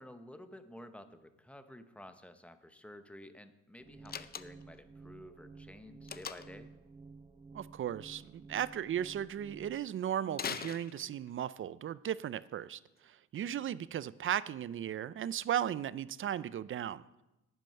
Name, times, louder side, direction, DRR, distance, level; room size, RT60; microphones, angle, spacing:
voice 1, 0.0-6.7, left 1 dB, 5° left, 9 dB, 0.9 m, -52 dB
sound 1, 3.8-9.8, right 4 dB, 20° right, 1.1 m, -53 dB
Slam, 4.1-4.8 6.1-6.7 10.3-11.4, left 7 dB, 30° left, 0.5 m, -41 dB
voice 2, 7.5-17.0, right 10 dB, 45° right, 19 dB, 0.4 m, -36 dB
11.0 x 9.0 x 5.6 m, 0.97 s
cardioid pair, 90°, 30 cm